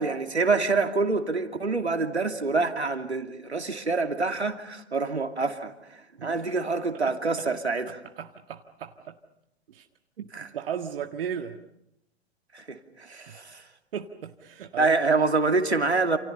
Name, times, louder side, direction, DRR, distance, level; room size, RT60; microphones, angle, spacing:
voice 1, 0.0-5.7 6.2-7.9 10.3-10.5 12.5-13.6 14.8-16.2, right 3 dB, 80° right, 2.7 m, -26 dB
voice 2, 6.2-6.6 7.1-7.5 8.2-9.2 9.7-9.9 10.2-11.6 13.3-13.4 13.9-15.0, right 8 dB, 55° right, 1.8 m, -36 dB
29.5 x 28.5 x 5.7 m
figure-of-eight pair, 105°, 33 cm